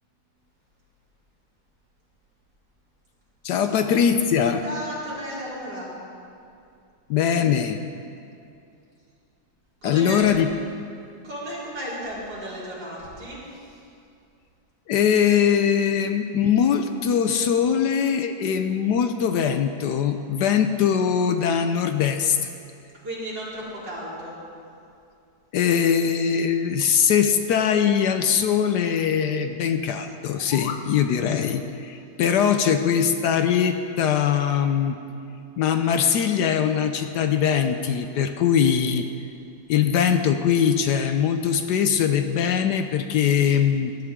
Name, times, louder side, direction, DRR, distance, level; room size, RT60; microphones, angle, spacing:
voice 1, 3.4-4.6 7.1-7.8 9.8-10.5 14.9-22.5 25.5-35.0 35.6-39.1 39.7-43.9, left 8 dB, 70° left, 7 dB, 1.1 m, -21 dB
voice 2, 4.6-5.9 9.8-10.3 11.2-13.8 23.0-24.4 30.7-31.0, equal, 70° right, -9 dB, 4.8 m, -34 dB
sound 1, 30.2-30.9, left 8 dB, 85° left, 1.5 m, -36 dB
18.5 x 11.5 x 3.6 m, 2.5 s
omnidirectional pair, 2.0 m